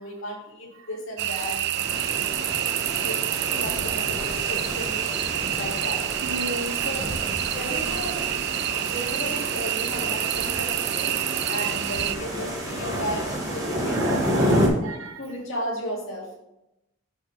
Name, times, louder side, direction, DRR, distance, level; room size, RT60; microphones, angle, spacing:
voice 1, 0.0-1.7 1.9-2.6 3.0-5.1 5.5-6.0 6.8-7.1 7.5-8.2 8.7-11.2 11.5-14.7 15.2-16.3, equal, 80° left, 2.3 m, -35 dB
sound 1, 1.2-12.2, right 13 dB, 55° right, 0.3 m, -28 dB
sound 2, 1.7-14.7, equal, 20° right, 1.7 m, -30 dB
voice 2, 6.2-6.8 8.6-8.7 10.5-10.6 11.4-11.5 13.9-15.2, right 1 dB, 80° right, 0.7 m, -35 dB
5.9 x 5.4 x 4.8 m
head